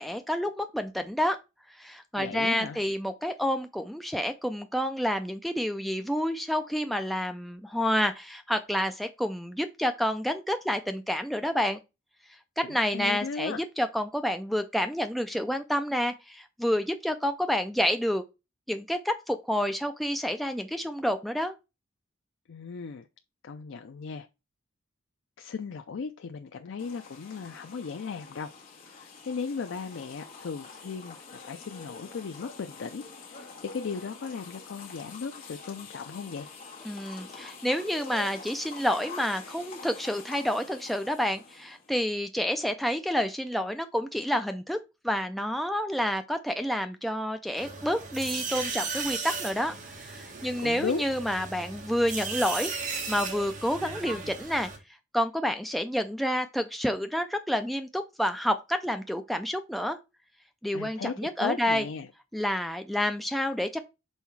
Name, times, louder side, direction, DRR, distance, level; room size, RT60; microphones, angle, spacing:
voice 1, 0.0-1.4 1.7-11.8 12.6-18.2 18.7-21.5 36.9-44.8 45.0-54.7 55.1-60.0 60.6-61.9 62.3-63.8, equal, ahead, 0.3 m, -29 dB
voice 2, 2.2-2.8 12.7-13.6 22.5-23.1 23.4-24.3 25.4-28.5 28.9-36.5 50.6-51.0 60.7-62.1, left 5 dB, 65° left, 0.4 m, -36 dB
sound 1, 26.8-41.9, left 4 dB, 45° left, 1.7 m, -46 dB
sound 2, 47.6-54.8, right 4 dB, 40° right, 1.6 m, -36 dB
5.6 x 4.2 x 4.6 m
head